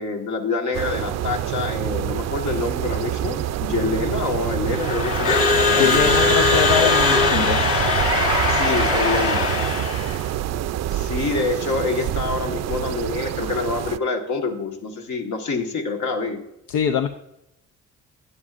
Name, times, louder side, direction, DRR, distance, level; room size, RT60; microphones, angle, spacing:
voice 1, 0.0-6.9 8.5-9.5 10.9-16.4, left 3 dB, 70° left, 3 dB, 1.6 m, -26 dB
sound 1, 0.7-14.0, right 12 dB, 60° right, 0.4 m, -26 dB
Crowd / Alarm, 4.7-10.2, left 4 dB, 45° left, 1.4 m, -20 dB
voice 2, 5.8-7.6 16.7-17.1, left 8 dB, 90° left, 7 dB, 0.6 m, -22 dB
12.5 x 9.8 x 2.5 m, 0.86 s
cardioid pair, 90°, 30 cm